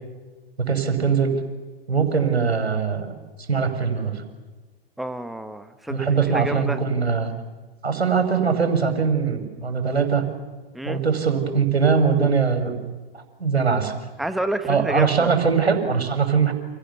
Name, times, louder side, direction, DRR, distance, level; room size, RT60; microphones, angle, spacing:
voice 1, 0.6-1.4 1.9-3.1 3.5-4.2 5.9-7.3 7.8-10.2 10.8-12.7 13.1-13.9 14.7-16.5, right 5 dB, 90° right, 7 dB, 5.8 m, -21 dB
voice 2, 5.0-6.8 10.7-11.0 14.2-15.3, right 1 dB, ahead, 9 dB, 1.3 m, -29 dB
29.5 x 28.5 x 7.0 m, 1.3 s
hypercardioid pair, 115°, 31 cm